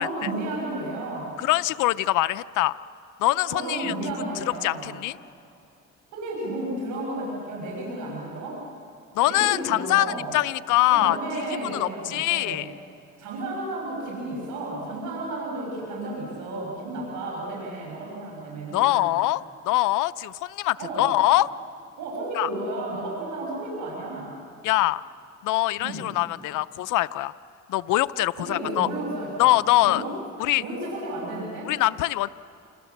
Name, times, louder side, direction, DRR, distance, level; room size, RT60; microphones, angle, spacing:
voice 1, 0.0-1.4 3.5-4.9 6.1-8.6 9.3-10.3 10.9-12.7 13.2-19.1 20.8-21.1 22.0-24.4 25.8-26.1 28.4-30.1 30.6-31.7, right 2 dB, 90° right, -3 dB, 7.1 m, -32 dB
voice 2, 1.4-2.7 3.2-3.9 4.6-5.2 9.1-11.2 11.7-12.6 18.7-21.5 22.3-22.5 24.6-25.0 25.4-27.3 27.7-28.9 29.4-30.0 30.4-30.6 31.7-32.3, left 16 dB, 90° left, 14 dB, 0.5 m, -23 dB
28.5 x 27.5 x 7.2 m, 2.6 s
cardioid pair, 90°, 30 cm